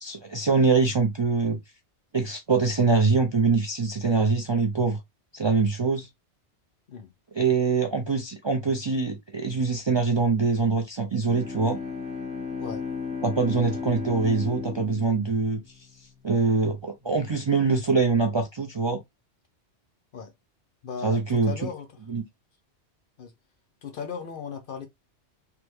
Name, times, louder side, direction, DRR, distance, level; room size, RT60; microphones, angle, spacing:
voice 1, 0.0-1.6 2.1-5.0 5.3-6.1 7.3-11.8 13.2-15.6 16.2-19.0 21.0-21.7 22.1-22.2, right 4 dB, 45° right, 0.3 m, -24 dB
Bowed string instrument, 11.2-16.3, left 5 dB, 5° right, 0.6 m, -35 dB
voice 2, 20.8-21.9 23.2-23.3 23.8-24.9, left 6 dB, 55° left, 0.7 m, -36 dB
3.5 x 2.1 x 3.0 m
omnidirectional pair, 1.2 m